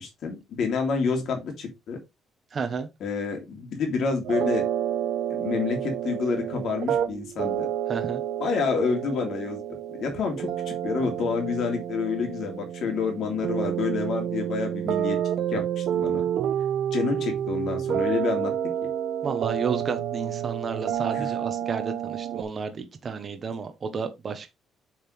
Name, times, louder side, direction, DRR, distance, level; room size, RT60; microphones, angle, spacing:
voice 1, 0.0-2.0 3.0-4.6 5.3-7.7 8.4-9.6 9.9-15.2 15.5-16.2 16.9-18.5 21.0-21.3, left 5 dB, 55° left, 3.0 m, -28 dB
voice 2, 2.5-2.9 7.9-8.2 19.2-24.5, right 5 dB, 35° right, 1.1 m, -31 dB
sound 1, 4.2-22.4, right 10 dB, 65° right, 0.7 m, -29 dB
7.0 x 6.5 x 3.3 m
cardioid pair, 150°, 0 cm